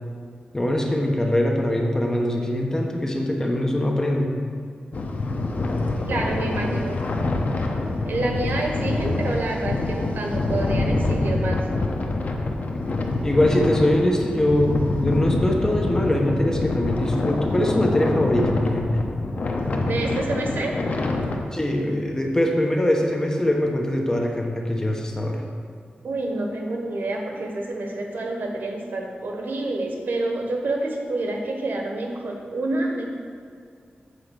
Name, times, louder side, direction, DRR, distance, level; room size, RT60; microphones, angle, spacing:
voice 1, 0.5-4.3 13.2-18.9 21.5-25.4, left 1 dB, 20° left, 1 dB, 1.0 m, -22 dB
sound 1, 4.9-21.4, left 2 dB, 55° left, 0.8 m, -26 dB
voice 2, 6.1-7.0 8.0-11.6 19.8-20.7 26.0-33.1, right 2 dB, 85° right, 1 dB, 1.1 m, -28 dB
8.2 x 4.7 x 6.7 m, 2.2 s
wide cardioid pair, 125°, 3 cm